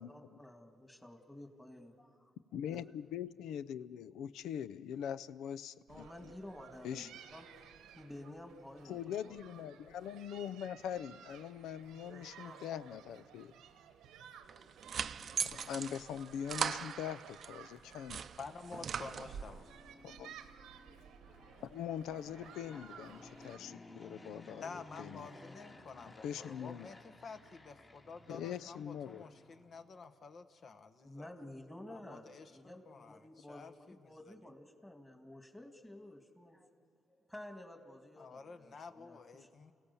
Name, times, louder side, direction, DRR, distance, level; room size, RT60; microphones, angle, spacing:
voice 1, 0.0-2.3 2.7-2.8 5.9-7.5 7.9-9.0 9.2-9.4 12.1-12.8 31.0-36.7 37.1-39.6, left 1 dB, 10° left, 5 dB, 2.3 m, -52 dB
voice 2, 2.5-6.0 6.8-7.1 8.9-13.5 15.4-18.2 20.0-20.3 21.6-25.3 26.2-26.9 28.3-29.3, left 9 dB, 85° left, 15 dB, 0.5 m, -42 dB
sound 1, 5.9-23.6, right 8 dB, 90° right, 1.1 m, -56 dB
sound 2, 14.5-17.5 17.9-19.6, right 7 dB, 55° right, 0.6 m, -40 dB
voice 3, 18.4-19.7 24.6-31.3 31.9-34.3 38.2-39.7, left 4 dB, 50° left, 9 dB, 1.3 m, -50 dB
Fixed-wing aircraft airplane, 18.9-29.9, left 2 dB, 35° left, 3.0 m, -57 dB
29.5 x 16.5 x 7.0 m, 2.4 s
cardioid pair, 90°, 0 cm